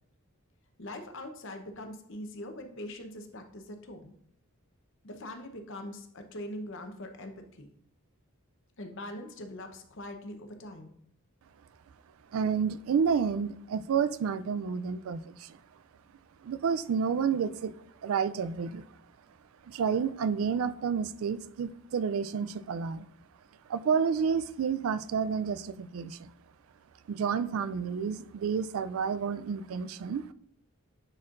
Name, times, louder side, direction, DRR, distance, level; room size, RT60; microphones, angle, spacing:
voice 1, 0.8-4.1 5.0-7.7 8.8-10.9, left 1 dB, 55° left, 6 dB, 0.8 m, -42 dB
voice 2, 12.3-15.6 16.4-17.7 18.0-18.8 19.7-23.1 23.7-26.3 27.1-30.3, right 6 dB, 65° right, 14 dB, 0.3 m, -30 dB
9.8 x 4.3 x 2.5 m, 0.68 s
head